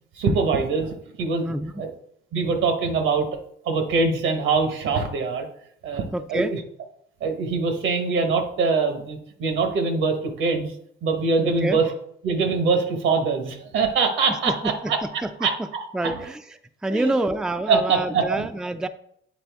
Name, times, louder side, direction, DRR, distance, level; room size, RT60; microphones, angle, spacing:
voice 1, 0.2-1.9 2.3-3.3 3.6-5.5 5.8-6.6 7.2-10.7 11.0-11.9 12.2-15.5 16.0-16.2 16.9-17.2 17.7-18.5, right 4 dB, 80° right, 6 dB, 1.1 m, -23 dB
voice 2, 6.1-6.6 11.6-11.8 14.5-14.9 15.2-15.7 15.9-16.4 16.8-18.9, right 1 dB, 5° right, 9 dB, 0.4 m, -27 dB
8.3 x 4.0 x 3.5 m, 0.70 s
cardioid pair, 90°, 20 cm